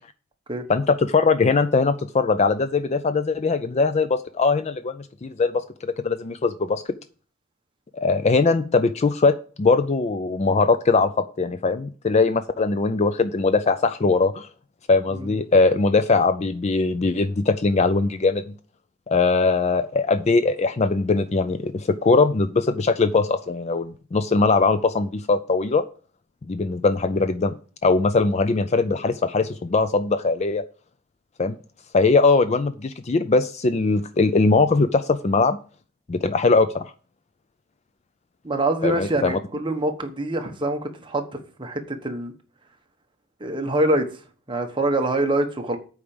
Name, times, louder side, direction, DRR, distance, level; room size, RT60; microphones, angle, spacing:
voice 1, 0.7-6.8 7.9-14.5 14.9-18.5 19.1-25.8 26.5-27.5 27.8-30.6 31.4-31.5 31.9-35.6 36.1-36.9 38.8-39.4, left 3 dB, 30° left, 12 dB, 0.4 m, -21 dB
voice 2, 38.4-41.2 41.6-42.3 43.4-44.1 44.5-45.8, right 2 dB, 20° right, 4 dB, 1.2 m, -25 dB
8.4 x 4.8 x 7.1 m, 0.39 s
head